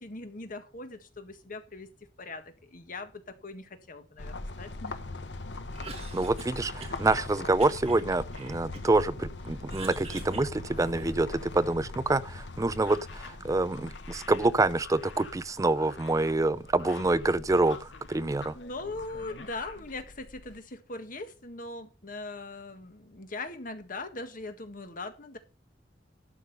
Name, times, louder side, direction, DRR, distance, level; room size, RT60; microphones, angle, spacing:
voice 1, 0.0-1.9 2.2-5.0 18.5-25.4, left 2 dB, 50° left, 1.7 m, -40 dB
sound 1, 4.2-20.6, left 2 dB, 70° left, 1.1 m, -42 dB
Cough, 5.6-7.2 7.6-9.1 9.4-11.3, right 4 dB, 35° right, 2.2 m, -46 dB
voice 2, 6.1-18.6, right 2 dB, 20° right, 0.4 m, -27 dB
sound 2, 12.7-18.6 18.8-19.8, left 5 dB, 90° left, 2.2 m, -49 dB
12.0 x 6.7 x 5.5 m
head